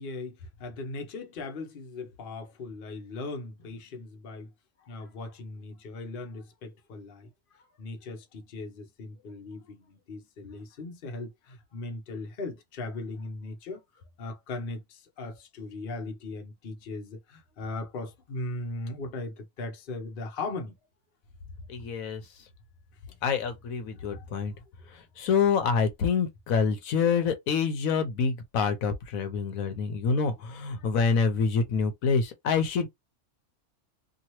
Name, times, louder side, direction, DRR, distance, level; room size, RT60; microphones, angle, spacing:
voice 1, 0.0-4.5 4.8-13.8 14.2-20.7 23.1-23.2 24.0-24.3 30.8-30.9, left 2 dB, 45° left, 0.9 m, -39 dB
voice 2, 21.7-22.2 23.2-24.5 24.9-32.9, left 5 dB, 75° left, 1.1 m, -26 dB
2.8 x 2.7 x 3.0 m
omnidirectional pair, 1.5 m